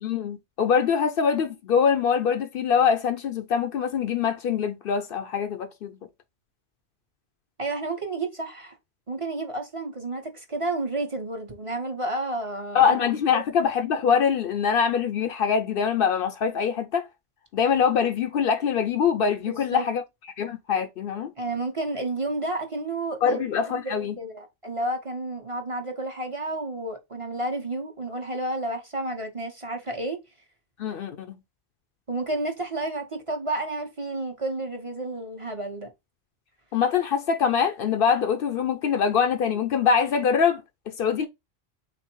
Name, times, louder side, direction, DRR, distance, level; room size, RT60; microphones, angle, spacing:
voice 1, 0.0-6.0 12.7-17.1 17.5-20.0 20.4-21.3 23.2-24.1 30.8-31.3 36.7-40.6 41.0-41.3, left 7 dB, 65° left, 0.7 m, -23 dB
voice 2, 7.6-8.7 9.1-13.0 13.3-13.4 19.4-19.9 21.4-23.4 23.7-30.2 32.1-35.9, right 2 dB, 30° right, 1.0 m, -31 dB
3.8 x 2.6 x 4.4 m
omnidirectional pair, 1.1 m